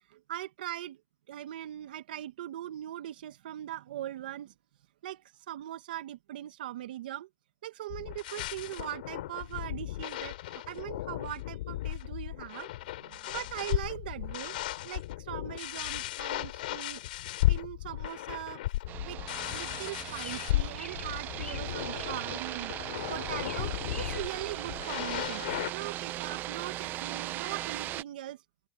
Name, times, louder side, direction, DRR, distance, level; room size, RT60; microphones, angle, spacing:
voice 1, 0.1-1.0 1.3-4.5 5.0-7.3 7.6-12.7 13.0-17.0 17.5-18.6 19.0-19.2 19.5-25.4 25.7-28.4, right 13 dB, 85° right, 1.6 m, -40 dB
sound 1, 7.9-25.7, left 16 dB, 80° left, 3.1 m, -35 dB
sound 2, 18.9-28.0, right 15 dB, 40° right, 0.6 m, -38 dB
sound 3, 20.1-25.7, left 4 dB, 15° left, 2.4 m, -50 dB
open air
supercardioid pair, 120°, 5 cm